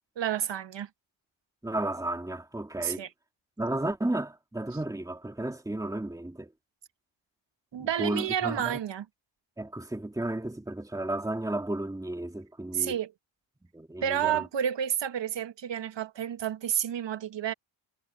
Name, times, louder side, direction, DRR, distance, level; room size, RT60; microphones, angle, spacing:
voice 1, 0.2-0.9 2.8-3.1 7.7-9.1 12.7-13.1 14.0-17.5, right 9 dB, 60° right, 1.5 m, -30 dB
voice 2, 1.6-3.1 3.6-6.5 7.8-8.8 9.6-13.0 13.7-14.5, right 1 dB, 5° right, 2.3 m, -33 dB
cardioid pair, 115°, 48 cm